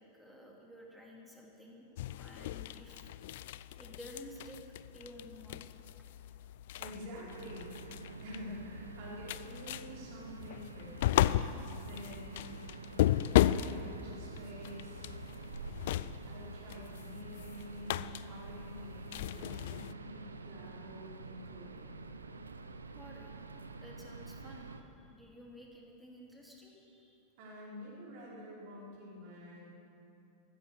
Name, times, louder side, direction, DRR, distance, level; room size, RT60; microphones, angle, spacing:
voice 1, 0.0-1.8 2.1-3.1 3.8-4.6 4.9-5.7 22.9-23.3 23.8-27.2, left 1 dB, ahead, -2 dB, 2.8 m, -52 dB
sound 1, 2.0-19.9, left 13 dB, 55° left, 0.3 m, -35 dB
voice 2, 6.8-12.6 13.6-15.0 16.3-21.9 27.4-29.8, equal, 50° right, -5 dB, 4.7 m, -48 dB
sound 2, 7.3-24.8, right 3 dB, 75° right, 0.7 m, -48 dB
14.5 x 13.0 x 6.8 m, 2.8 s
figure-of-eight pair, 90°, 0 cm